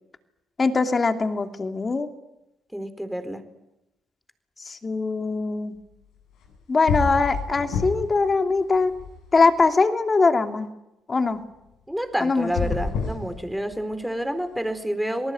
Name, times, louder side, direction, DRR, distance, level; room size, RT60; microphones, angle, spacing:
voice 1, 0.6-2.1 4.7-5.8 6.7-8.9 9.3-10.7 11.1-11.4 12.2-12.7, left 4 dB, 35° left, 6 dB, 2.8 m, -22 dB
voice 2, 2.7-3.4 11.9-15.3, equal, 5° right, 9 dB, 4.1 m, -29 dB
sound 1, 6.4-6.6 6.9-8.2 8.5-9.6 12.4-13.9, left 5 dB, 75° left, 7.9 m, -28 dB
27.5 x 19.0 x 9.4 m, 0.93 s
supercardioid pair, 65°, 0 cm